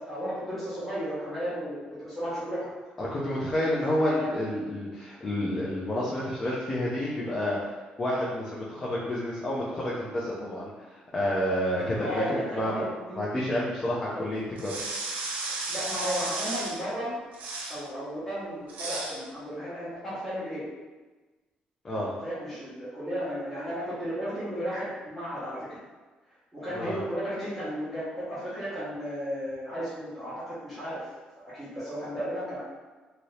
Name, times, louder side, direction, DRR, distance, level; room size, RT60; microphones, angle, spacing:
voice 1, 0.1-2.7 4.0-4.3 11.8-13.3 15.7-17.2 17.7-20.6 21.9-25.8 26.5-31.0 31.5-32.6, equal, 5° left, -13 dB, 1.0 m, -34 dB
voice 2, 3.0-7.6 8.0-10.7 11.1-14.8 21.8-22.1 26.7-27.0, left 1 dB, 25° left, -6 dB, 0.5 m, -29 dB
sound 1, 14.6-16.8 17.3-17.8 18.7-19.2, right 3 dB, 65° right, 0.6 m, -34 dB
2.7 x 2.7 x 3.2 m, 1.3 s
cardioid pair, 130°, 3 cm